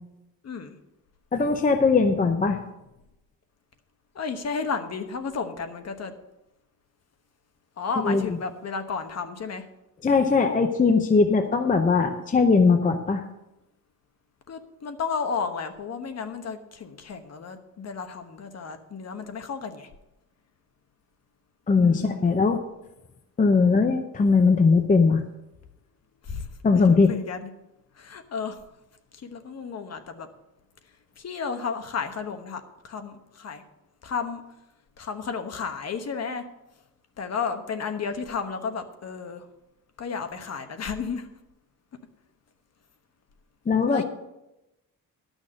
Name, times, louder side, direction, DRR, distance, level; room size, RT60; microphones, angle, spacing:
voice 1, 0.4-0.8 4.1-6.1 7.8-9.7 14.5-19.9 21.8-22.3 26.2-26.5 26.7-27.5 27.9-28.6 29.1-30.3 31.2-33.6 34.0-34.4 35.0-36.5 37.2-39.5 40.0-41.3 43.9-44.0, left 5 dB, 45° left, 8 dB, 1.2 m, -32 dB
voice 2, 1.3-2.6 8.0-8.2 10.0-13.2 21.7-22.6 23.4-25.2 26.6-27.1 43.7-44.0, left 4 dB, 25° left, 6 dB, 0.7 m, -20 dB
11.5 x 6.4 x 6.4 m, 0.93 s
cardioid pair, 140°, 35 cm